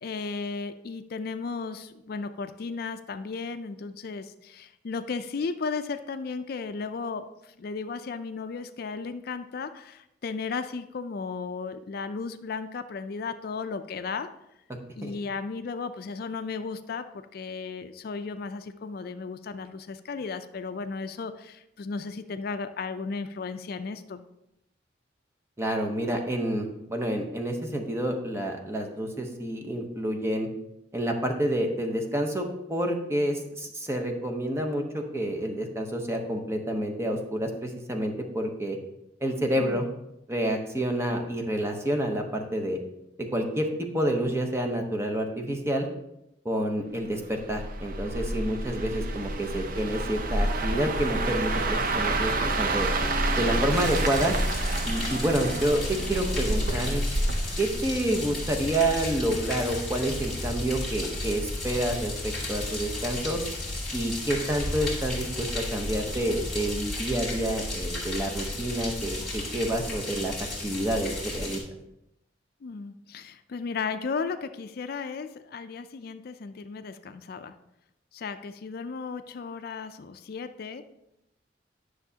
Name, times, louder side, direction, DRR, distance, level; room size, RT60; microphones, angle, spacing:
voice 1, 0.0-14.3 15.0-24.2 39.5-39.8 49.5-49.7 72.6-77.6 78.1-80.9, left 4 dB, 55° left, 9 dB, 0.4 m, -35 dB
voice 2, 25.6-30.5 30.9-38.8 39.2-39.9 40.3-42.8 43.2-45.9 46.4-52.9 53.4-54.4 54.9-57.0 57.6-63.4 63.9-70.3 70.6-71.6, right 1 dB, 15° right, 3 dB, 0.8 m, -28 dB
sound 1, 47.4-58.5 58.8-59.1, right 2 dB, 50° right, 0.6 m, -28 dB
sound 2, 53.7-71.6, left 2 dB, ahead, 2.3 m, -34 dB
10.5 x 6.3 x 2.8 m, 0.85 s
head